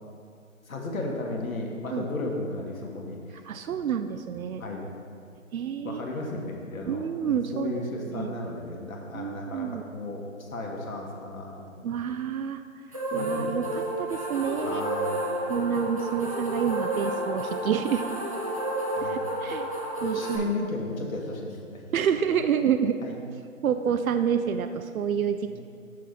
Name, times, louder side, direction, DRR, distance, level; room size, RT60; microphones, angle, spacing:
voice 1, 0.7-3.4 4.6-4.9 5.8-11.9 13.1-13.6 14.6-15.3 19.0-19.2 20.0-21.8 23.0-23.1 25.5-25.6, left 2 dB, 80° left, 0 dB, 1.8 m, -34 dB
voice 2, 3.5-4.6 5.5-6.0 6.9-8.4 9.1-9.8 11.8-12.6 13.1-14.9 15.5-18.0 19.0-19.7 20.0-20.5 21.9-23.0 23.6-25.6, right 8 dB, 90° right, 9 dB, 0.6 m, -28 dB
sound 1, 12.9-20.4, right 1 dB, 25° right, 0.7 m, -31 dB
6.7 x 6.4 x 5.2 m, 2.2 s
hypercardioid pair, 180°, 41 cm